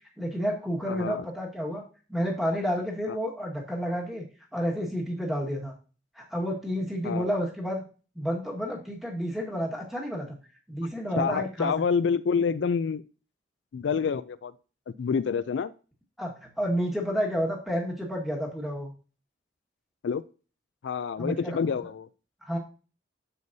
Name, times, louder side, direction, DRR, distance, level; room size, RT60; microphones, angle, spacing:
voice 1, 0.2-1.8 2.1-4.3 4.5-5.7 6.1-7.8 8.1-10.4 10.7-11.7 16.2-18.9 21.2-21.6 22.4-22.6, equal, ahead, -1 dB, 1.6 m, -30 dB
voice 2, 0.9-1.2 3.1-3.2 7.0-7.3 11.1-13.0 13.7-14.5 14.9-15.7 20.0-20.2 20.8-22.1, left 6 dB, 80° left, 14 dB, 0.4 m, -27 dB
9.4 x 7.0 x 2.7 m, 0.36 s
head